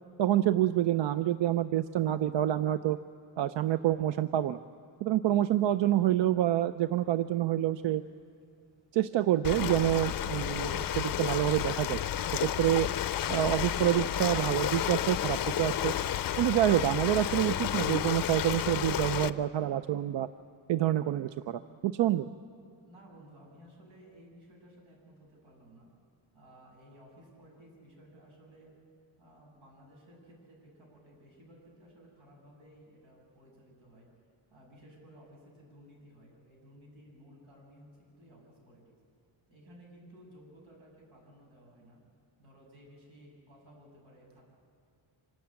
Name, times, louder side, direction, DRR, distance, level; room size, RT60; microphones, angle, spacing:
voice 1, 0.2-3.0 3.4-4.6 5.0-8.0 8.9-12.0 12.4-12.9 13.3-15.9 16.4-20.3 20.7-22.3, right 12 dB, 65° right, 13 dB, 0.5 m, -27 dB
sound 1, 6.8-16.1, right 1 dB, 25° right, 3.5 m, -58 dB
Ocean, 9.4-19.3, left 11 dB, 50° left, 0.5 m, -31 dB
sound 2, 10.8-17.0, left 2 dB, 5° right, 0.6 m, -51 dB
voice 2, 22.8-25.9 26.3-28.7 29.2-34.1 34.5-38.9 39.5-42.0 42.4-44.5, equal, 85° right, -2 dB, 7.1 m, -56 dB
25.5 x 13.0 x 8.7 m, 2.6 s
wide cardioid pair, 175°, 47 cm